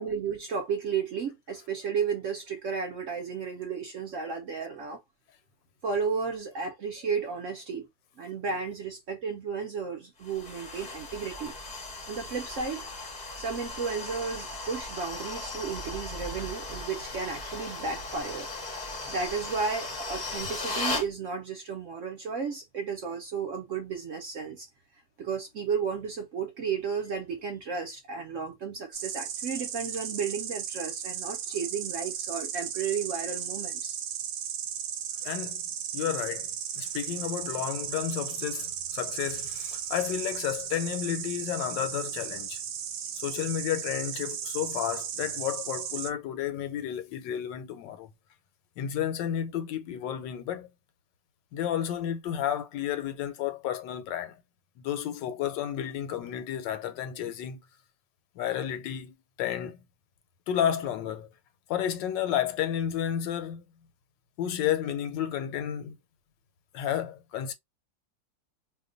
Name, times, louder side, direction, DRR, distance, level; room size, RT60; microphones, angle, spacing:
voice 1, 0.0-5.0 5.8-7.9 8.2-11.5 12.1-12.8 13.3-18.5 19.1-24.7 25.2-34.0 35.2-35.3, right 5 dB, 65° right, 0.8 m, -33 dB
sound 1, 10.2-21.1, left 2 dB, 40° left, 0.6 m, -37 dB
Insect, 28.9-46.1, right 9 dB, 80° right, 1.2 m, -36 dB
voice 2, 35.2-35.6 35.9-42.6 43.2-48.1 48.8-50.7 51.5-54.4 54.8-57.6 58.4-59.8 60.5-61.3 61.7-63.6 64.4-66.0 66.7-67.5, left 10 dB, 85° left, 1.3 m, -31 dB
2.9 x 2.2 x 3.7 m
omnidirectional pair, 1.9 m